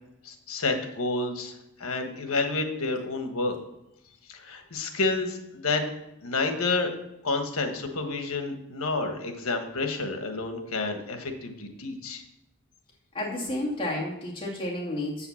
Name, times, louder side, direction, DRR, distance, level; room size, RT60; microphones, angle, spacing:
voice 1, 0.2-1.5 1.8-3.6 4.3-5.8 6.2-6.9 7.2-12.2, left 3 dB, 80° left, 6 dB, 1.4 m, -29 dB
voice 2, 13.1-15.3, left 1 dB, 25° left, -3 dB, 2.3 m, -31 dB
7.8 x 5.7 x 7.0 m, 0.88 s
head